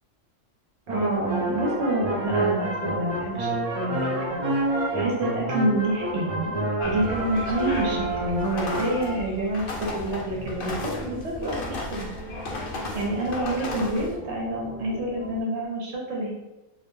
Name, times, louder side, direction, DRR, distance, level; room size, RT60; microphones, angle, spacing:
sound 1, 0.9-9.3 9.7-15.4, right 2 dB, 40° right, 0.5 m, -30 dB
voice 1, 0.9-3.5 3.7-6.6 6.8-11.6 11.9-12.1 12.9-16.3, right 1 dB, 65° right, -2 dB, 0.9 m, -28 dB
sound 2, 6.8-14.2, left 2 dB, 60° left, 0.6 m, -35 dB
2.4 x 2.1 x 3.1 m, 0.98 s
omnidirectional pair, 1.3 m